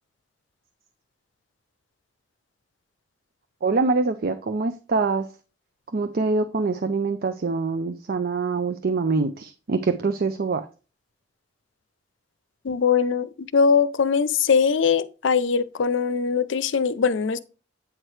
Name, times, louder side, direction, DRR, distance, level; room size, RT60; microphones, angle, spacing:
voice 1, 3.6-5.3 5.9-10.7, right 4 dB, 55° right, 0.5 m, -24 dB
voice 2, 12.6-17.4, left 6 dB, 80° left, 0.5 m, -21 dB
8.7 x 4.7 x 3.2 m
head